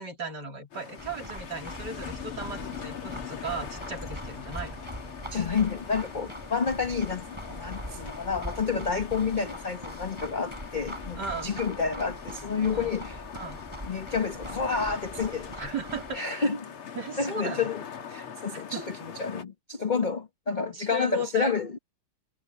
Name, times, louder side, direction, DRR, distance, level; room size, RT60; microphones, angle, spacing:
voice 1, 0.0-4.8 11.1-11.5 12.7-12.9 13.3-13.6 15.6-16.5 16.9-17.7 18.5-18.8 20.7-21.5, right 2 dB, 50° right, 4.2 m, -36 dB
sound 1, 0.7-19.4, left 7 dB, 85° left, 2.8 m, -42 dB
sound 2, 1.0-16.2, right 1 dB, 10° right, 7.1 m, -42 dB
voice 2, 5.3-13.2 13.9-15.5 16.1-16.7 17.2-17.8 18.1-21.8, left 5 dB, 30° left, 0.9 m, -29 dB
omnidirectional pair, 2.3 m